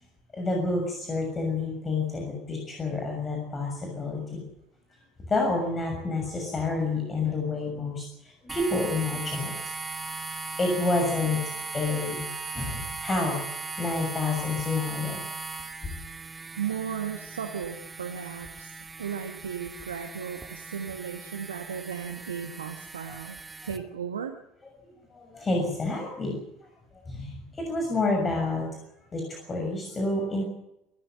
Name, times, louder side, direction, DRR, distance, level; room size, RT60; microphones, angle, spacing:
voice 1, 0.3-4.4 5.3-9.5 10.6-13.4 13.8-15.2 23.1-23.2 25.1-26.3 27.1-28.7 29.1-30.4, left 3 dB, 25° left, 2 dB, 6.8 m, -29 dB
sound 1, 8.5-23.8, right 4 dB, 20° right, 2.3 m, -38 dB
voice 2, 16.6-23.4 23.6-24.3, right 7 dB, 80° right, 5 dB, 1.6 m, -35 dB
26.5 x 14.5 x 7.8 m, 0.89 s
figure-of-eight pair, 70°, 0 cm